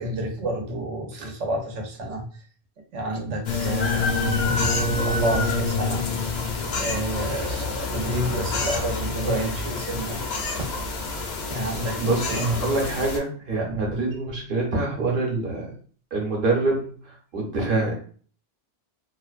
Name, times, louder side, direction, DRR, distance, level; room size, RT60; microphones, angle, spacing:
voice 1, 0.0-2.4 2.9-6.4 6.8-10.2 10.5-10.7 11.5-12.7 13.6-14.0, right 1 dB, 90° right, 2 dB, 1.0 m, -30 dB
sound 1, 3.4-13.2, left 3 dB, 70° left, 0.8 m, -27 dB
voice 2, 12.0-15.7 16.1-17.9, right 3 dB, 55° right, -1 dB, 1.0 m, -25 dB
2.5 x 2.1 x 2.3 m, 0.44 s
omnidirectional pair, 1.2 m